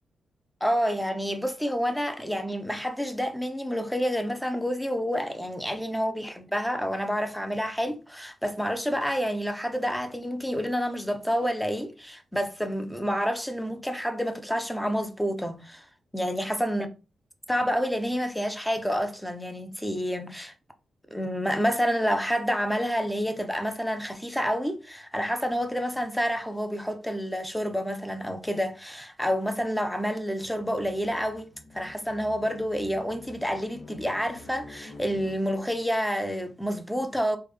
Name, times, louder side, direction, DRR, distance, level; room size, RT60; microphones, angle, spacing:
voice 1, 0.6-15.8 16.1-16.9 17.5-20.5 21.1-37.4, equal, 5° left, 0.4 m, -29 dB
sound 1, 30.5-35.9, left 2 dB, 75° left, 0.8 m, -48 dB
3.3 x 2.1 x 3.1 m
wide cardioid pair, 145°, 0 cm